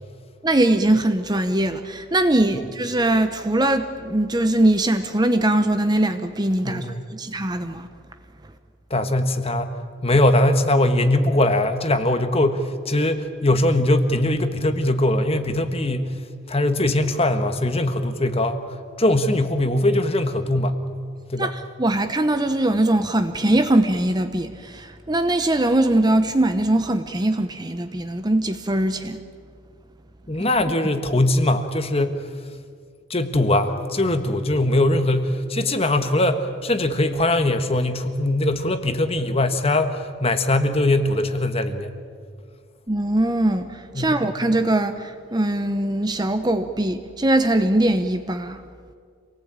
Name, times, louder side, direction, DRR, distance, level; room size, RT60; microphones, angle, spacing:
voice 1, 0.4-7.9 21.4-29.2 42.9-48.6, right 1 dB, 20° right, 8 dB, 0.8 m, -21 dB
voice 2, 6.6-7.0 8.9-16.1 16.5-18.7 19.0-20.8 21.3-21.5 30.3-32.2 33.1-41.9 43.9-44.3, left 1 dB, 25° left, 8 dB, 1.4 m, -21 dB
27.0 x 19.0 x 8.8 m, 2.1 s
head